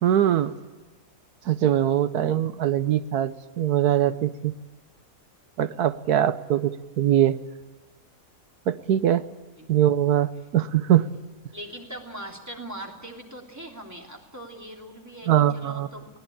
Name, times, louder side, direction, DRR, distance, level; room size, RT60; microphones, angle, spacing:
voice 1, 0.0-0.5 1.4-4.5 5.6-7.4 8.7-9.3 9.7-11.1 15.3-15.9, right 11 dB, 75° right, 13 dB, 1.4 m, -22 dB
voice 2, 11.5-16.1, right 1 dB, 10° right, 1 dB, 3.1 m, -40 dB
22.5 x 18.0 x 8.7 m, 1.2 s
omnidirectional pair, 1.7 m